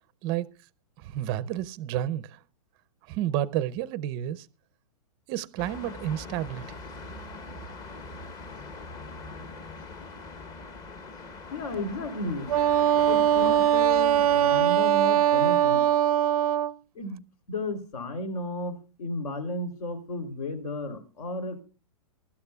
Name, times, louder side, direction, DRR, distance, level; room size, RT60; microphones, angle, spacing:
voice 1, 0.2-0.5 1.0-2.4 3.1-4.5 5.3-6.7, right 12 dB, 25° right, 0.5 m, -30 dB
sound 1, 5.6-14.6, left 3 dB, 20° left, 0.9 m, -42 dB
voice 2, 11.5-12.6 13.0-15.8 16.9-17.2 17.5-21.6, left 1 dB, 75° left, 3.3 m, -33 dB
Wind instrument woodwind instrument, 12.5-16.7, right 11 dB, 80° right, 0.5 m, -21 dB
23.5 x 12.5 x 2.3 m
hypercardioid pair, 160°, 19 cm